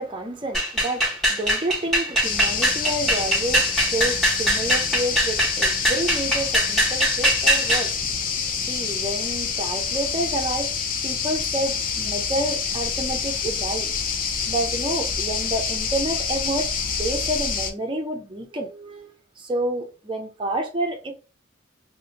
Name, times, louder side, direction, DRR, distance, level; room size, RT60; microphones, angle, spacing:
voice 1, 0.0-8.4 8.7-13.9 14.5-21.1, right 1 dB, 25° right, 0.5 m, -29 dB
sound 1, 0.5-7.9, equal, ahead, 1.0 m, -22 dB
sound 2, 2.2-17.7, left 6 dB, 40° left, 0.4 m, -27 dB
2.8 x 2.1 x 3.7 m
head